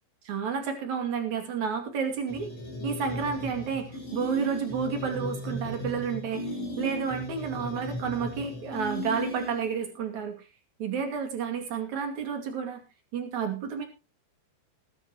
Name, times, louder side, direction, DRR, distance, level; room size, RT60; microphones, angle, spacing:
voice 1, 0.2-2.5 2.8-6.4 6.8-10.4 10.8-12.8 13.1-13.8, right 6 dB, 45° right, 5 dB, 3.2 m, -31 dB
sound 1, 2.3-9.8, left 1 dB, 35° left, 5.9 m, -36 dB
19.5 x 11.0 x 3.0 m, 0.27 s
omnidirectional pair, 5.3 m